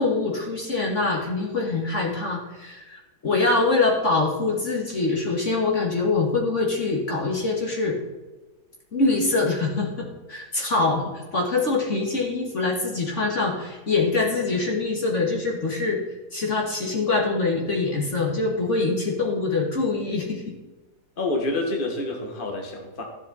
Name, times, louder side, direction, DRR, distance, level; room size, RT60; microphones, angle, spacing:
voice 1, 0.0-8.0 8.9-16.0 16.3-20.6, left 3 dB, 45° left, 0 dB, 2.1 m, -24 dB
voice 2, 21.2-23.0, left 2 dB, 30° left, 1 dB, 1.9 m, -28 dB
14.5 x 7.5 x 4.2 m, 1.2 s
omnidirectional pair, 1.7 m